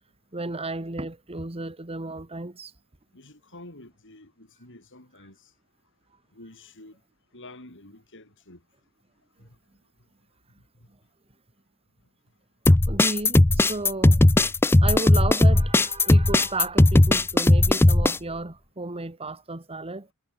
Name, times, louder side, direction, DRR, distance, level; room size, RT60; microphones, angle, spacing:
voice 1, 0.3-2.7 12.9-14.2 14.8-20.1, right 2 dB, 25° right, 1.6 m, -33 dB
voice 2, 3.1-5.5 6.3-7.0 7.3-8.7 9.4-9.6 10.7-10.9, left 2 dB, 55° left, 7.4 m, -48 dB
sound 1, 12.7-18.2, left 1 dB, 10° left, 0.4 m, -17 dB
head